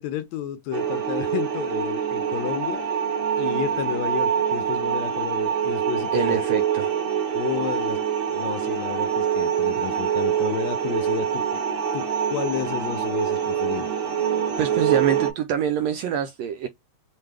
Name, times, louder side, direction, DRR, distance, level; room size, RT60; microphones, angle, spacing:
voice 1, 0.0-2.9 3.4-6.4 7.3-8.0 8.3-11.6 11.9-13.9, left 11 dB, 75° left, 1.7 m, -31 dB
sound 1, 0.7-15.3, right 8 dB, 65° right, 3.0 m, -25 dB
voice 2, 6.1-6.9 14.6-16.7, right 9 dB, 80° right, 1.5 m, -26 dB
5.7 x 2.2 x 3.3 m
omnidirectional pair, 3.4 m